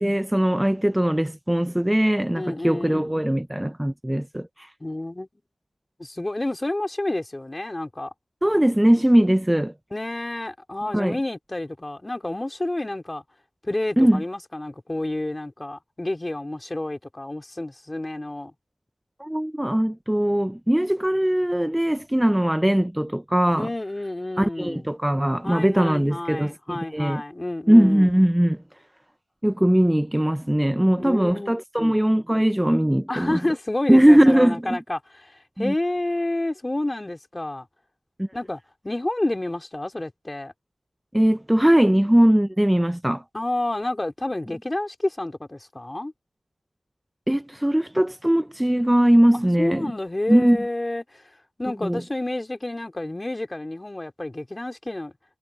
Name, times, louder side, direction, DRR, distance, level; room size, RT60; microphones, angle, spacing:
voice 1, 0.0-4.7 8.4-9.7 10.9-11.2 14.0-14.2 19.2-23.7 24.4-27.2 27.7-28.6 29.4-33.4 33.9-34.8 35.6-35.7 38.2-38.3 41.1-43.2 47.3-49.9 50.3-50.6 51.8-52.0, right 1 dB, 10° right, 0.7 m, -20 dB
voice 2, 2.3-3.1 4.8-5.3 6.0-8.1 9.9-13.2 13.6-18.5 23.5-24.8 25.4-28.1 31.0-32.0 33.1-37.7 38.3-40.5 43.3-46.1 49.6-51.2 51.6-55.1, left 1 dB, 20° left, 3.9 m, -29 dB
cardioid pair, 55°, 0 cm